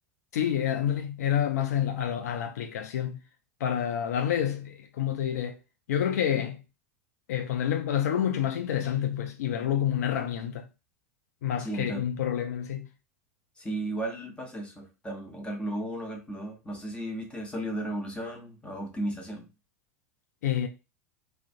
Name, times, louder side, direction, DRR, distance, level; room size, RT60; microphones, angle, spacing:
voice 1, 0.3-3.2 3.6-5.6 5.9-6.6 7.3-10.7 11.4-12.9 20.4-20.7, left 9 dB, 75° left, 0.4 m, -28 dB
voice 2, 11.6-12.0 13.6-19.5, right 1 dB, 10° left, 0.9 m, -35 dB
2.4 x 2.2 x 2.5 m
hypercardioid pair, 85°, 9 cm